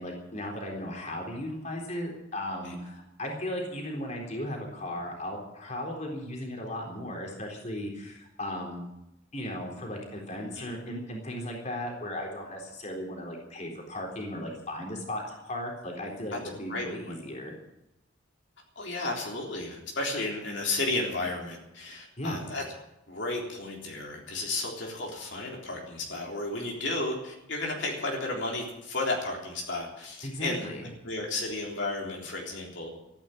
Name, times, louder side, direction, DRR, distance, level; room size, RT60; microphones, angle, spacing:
voice 1, 0.0-8.8 9.3-17.5 22.2-22.4 30.2-30.9, left 1 dB, 40° left, 1 dB, 3.8 m, -36 dB
voice 2, 18.8-22.6 23.1-30.7 31.0-32.9, left 2 dB, 65° left, -1 dB, 3.6 m, -33 dB
14.5 x 10.5 x 9.1 m, 0.89 s
head